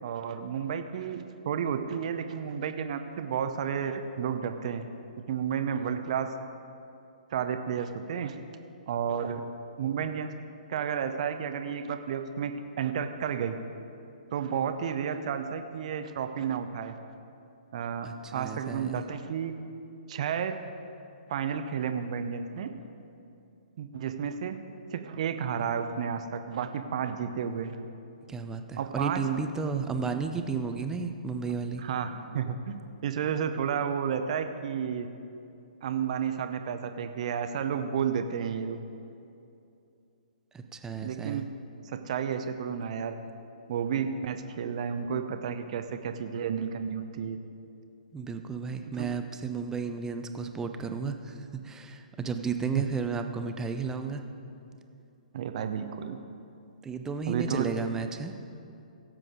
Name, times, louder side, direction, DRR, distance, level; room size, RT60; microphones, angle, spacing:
voice 1, 0.0-4.8 5.3-6.3 7.3-8.4 8.9-9.4 9.8-10.3 10.7-13.6 14.3-17.0 17.7-19.5 20.1-20.5 21.3-22.7 23.8-24.6 24.9-27.8 28.8-29.2 31.8-35.1 35.8-38.8 41.0-41.5 41.8-43.2 43.7-47.4 48.9-49.1 52.8-52.9 55.3-56.2 57.3-57.7, right 7 dB, 50° right, 8 dB, 0.7 m, -31 dB
voice 2, 18.0-19.1 28.3-31.8 40.5-41.4 48.1-54.2 56.8-58.3, right 5 dB, 10° right, 6 dB, 0.6 m, -33 dB
17.0 x 7.6 x 3.8 m, 2.6 s
figure-of-eight pair, 130°, 5 cm